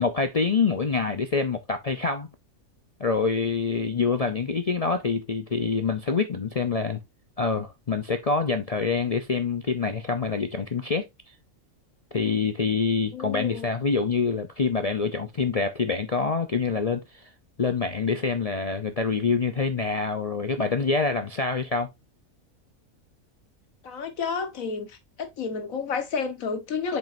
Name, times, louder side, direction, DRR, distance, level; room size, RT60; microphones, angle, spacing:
voice 1, 0.0-2.3 3.0-7.0 7.4-11.1 12.1-17.3 17.6-21.9, left 4 dB, 45° left, 0.5 m, -26 dB
voice 2, 13.1-13.7 23.8-24.9 25.2-27.0, left 5 dB, 75° left, 1.6 m, -30 dB
7.4 x 5.3 x 2.6 m
omnidirectional pair, 1.4 m